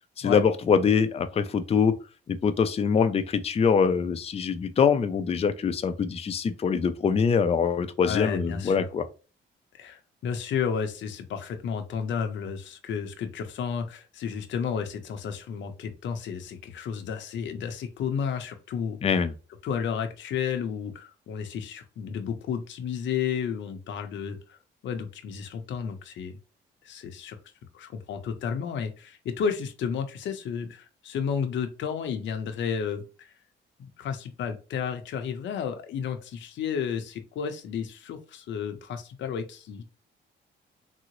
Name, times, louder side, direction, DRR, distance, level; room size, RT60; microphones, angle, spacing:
voice 1, 0.2-1.9 2.3-9.1 19.0-19.3, left 6 dB, 30° left, 0.4 m, -24 dB
voice 2, 8.0-8.9 9.7-19.2 19.6-24.6 24.8-26.4 26.8-27.4 27.7-33.3 33.8-39.9, left 7 dB, 70° left, 0.7 m, -32 dB
3.7 x 2.0 x 3.0 m
cardioid pair, 90°, 20 cm